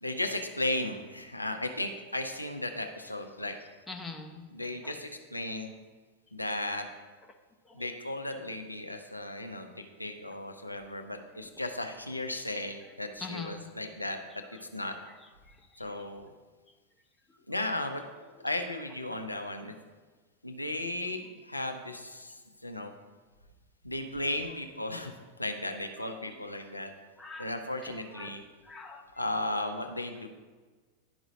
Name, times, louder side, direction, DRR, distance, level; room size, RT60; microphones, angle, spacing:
voice 1, 0.0-3.6 4.5-5.7 6.3-6.9 7.7-9.7 10.0-14.4 14.7-14.9 15.8-16.3 17.5-18.0 18.4-19.7 20.4-23.0 23.8-26.9 27.4-28.4 29.2-30.3, left 1 dB, 85° left, 5 dB, 0.6 m, -35 dB
voice 2, 3.9-4.4 4.8-4.9 7.8-7.9 13.2-13.6 14.3-14.4 14.8-15.3 17.6-17.7 18.2-18.6 19.0-19.3 26.0-26.4 27.2-28.4 28.7-29.1, left 4 dB, 10° left, 3 dB, 0.7 m, -45 dB
11.0 x 4.9 x 2.7 m, 1.3 s
figure-of-eight pair, 90°, 0 cm